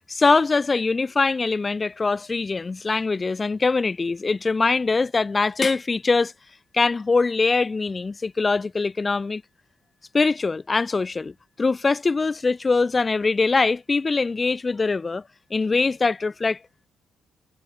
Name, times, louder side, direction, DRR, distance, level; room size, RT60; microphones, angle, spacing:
voice 1, 0.1-6.3 6.7-9.4 10.1-11.3 11.6-15.2 15.5-16.6, left 4 dB, 30° left, 1.0 m, -22 dB
cardioid pair, 90°, 0 cm